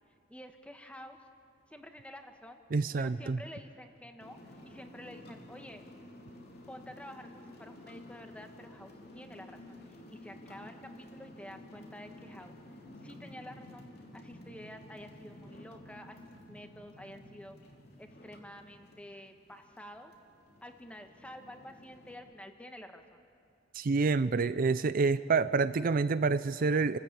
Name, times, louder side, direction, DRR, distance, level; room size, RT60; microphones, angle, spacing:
voice 1, 0.3-1.3 1.7-2.6 3.0-5.8 6.7-12.5 13.0-17.6 18.0-20.1 20.6-23.2, left 1 dB, 5° left, 5 dB, 1.4 m, -49 dB
voice 2, 2.7-3.4 23.7-27.0, right 4 dB, 50° right, 14 dB, 0.5 m, -28 dB
sound 1, 4.2-22.2, left 1 dB, 60° left, 3.0 m, -52 dB
28.5 x 13.5 x 8.5 m, 2.3 s
head